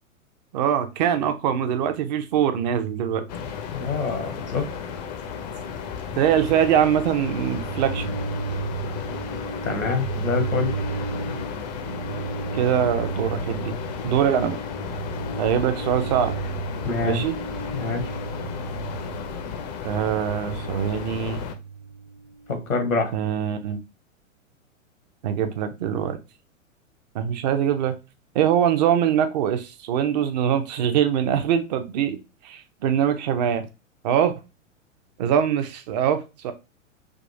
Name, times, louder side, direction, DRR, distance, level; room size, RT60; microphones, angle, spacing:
voice 1, 0.5-3.3 6.2-8.0 12.5-13.7 14.0-14.6 15.4-16.3 17.0-17.4 19.8-21.4 23.1-23.8 25.2-26.2 27.1-28.0 28.3-32.2 32.4-33.7 34.0-34.3 35.2-36.5, right 9 dB, 35° right, 9 dB, 0.5 m, -23 dB
sound 1, 3.3-21.5, left 6 dB, 35° left, 0.4 m, -34 dB
voice 2, 3.7-4.7 9.6-10.7 16.8-17.2 17.7-18.1 22.5-23.1, left 4 dB, 85° left, 5 dB, 1.1 m, -26 dB
sound 2, 7.2-23.1, right 5 dB, 55° right, 1.0 m, -34 dB
3.5 x 2.3 x 2.6 m, 0.28 s
figure-of-eight pair, 105°, 40 cm